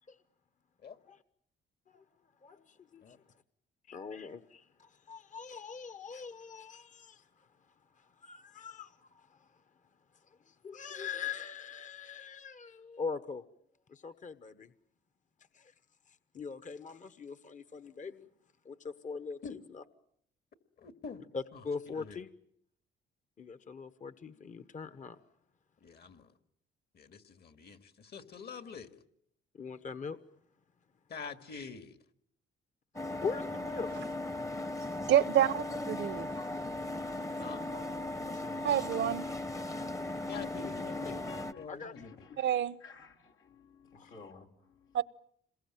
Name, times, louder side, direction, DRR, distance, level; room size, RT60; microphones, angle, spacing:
voice 1, 2.4-3.2 3.9-7.5 7.9-9.6 10.3-13.5 13.9-14.7 15.5-15.7 16.1-18.3 18.6-19.4 19.7-19.8 21.3-22.3 23.4-25.2 29.5-30.2 33.2-34.0 37.7-37.9 38.2-38.6 41.7-41.9 43.9-44.1, left 5 dB, 40° left, 1.2 m, -42 dB
voice 2, 20.8-21.2 21.5-22.2 25.8-26.3 26.9-28.9 31.1-32.0 37.4-37.7 40.3-41.2 41.6-42.1, left 5 dB, 55° left, 2.3 m, -46 dB
sound 1, 33.0-41.5, left 2 dB, 15° left, 1.0 m, -37 dB
voice 3, 35.1-36.3 38.6-39.3 42.4-42.8 44.9-45.0, right 11 dB, 65° right, 1.0 m, -28 dB
voice 4, 40.9-41.7 42.0-45.0, left 6 dB, 85° left, 3.5 m, -52 dB
27.0 x 22.0 x 9.1 m
cardioid pair, 90°, 20 cm